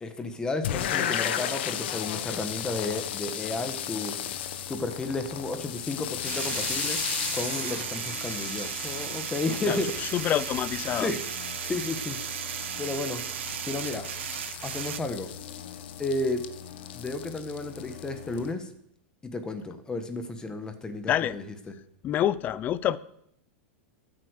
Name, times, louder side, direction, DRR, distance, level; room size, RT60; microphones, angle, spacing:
voice 1, 0.0-4.1 4.7-7.0 7.3-10.1 11.0-11.2 11.6-12.2 12.8-13.2 13.6-14.1 14.6-15.3 16.0-16.4 16.9-18.7 19.2-21.4, left 2 dB, 10° left, 8 dB, 1.5 m, -32 dB
sound 1, 0.6-18.5, left 10 dB, 70° left, 1.3 m, -35 dB
sound 2, 3.8-3.9 5.9-15.0, right 12 dB, 80° right, 0.6 m, -35 dB
voice 2, 9.7-11.1 21.1-21.4 22.0-23.0, left 11 dB, 30° left, 18 dB, 0.6 m, -27 dB
13.0 x 8.6 x 6.6 m, 0.71 s
supercardioid pair, 145°, 6 cm